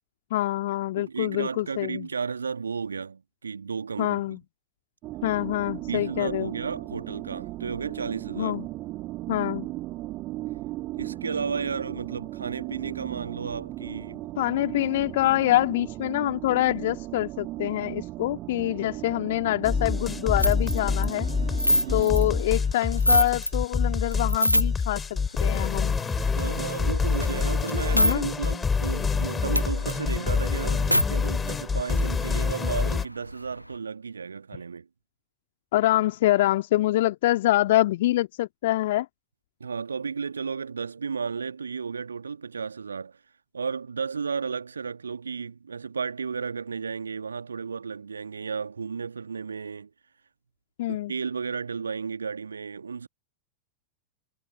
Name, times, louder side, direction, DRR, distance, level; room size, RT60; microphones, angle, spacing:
voice 1, 0.3-2.1 4.0-4.4 5.2-6.5 8.4-8.7 9.3-9.7 14.4-21.3 21.9-25.0 25.4-26.0 27.9-28.3 35.7-39.1 50.8-51.1, left 15 dB, 55° left, 1.8 m, -25 dB
voice 2, 1.0-4.4 5.8-8.6 11.0-14.3 21.7-22.2 26.3-34.9 39.6-43.2 43.5-49.9 50.9-53.1, right 5 dB, 75° right, 1.7 m, -33 dB
sound 1, 5.0-22.4, right 17 dB, 35° right, 2.4 m, -37 dB
sound 2, 19.6-33.0, left 5 dB, 15° left, 3.5 m, -26 dB
sound 3, 20.4-23.6 23.9-25.0 25.4-28.2 28.4-28.5 28.8-31.1 31.5-31.6 31.8-33.8, equal, 90° left, 0.8 m, -28 dB
figure-of-eight pair, 90°, 0 cm